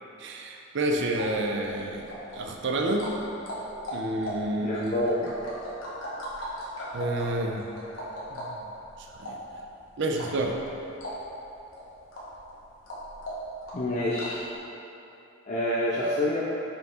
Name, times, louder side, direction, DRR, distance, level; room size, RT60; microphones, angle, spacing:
voice 1, 0.2-3.1 3.9-4.9 6.9-7.6 8.3-8.6 9.1-9.4 10.0-10.5, right 1 dB, 60° right, 2 dB, 0.6 m, -29 dB
sound 1, 1.1-14.5, equal, 70° left, 1.3 m, -39 dB
voice 2, 4.6-5.3 13.7-14.4 15.5-16.5, left 1 dB, 35° left, -7 dB, 0.6 m, -27 dB
5.4 x 5.2 x 3.7 m, 2.9 s
head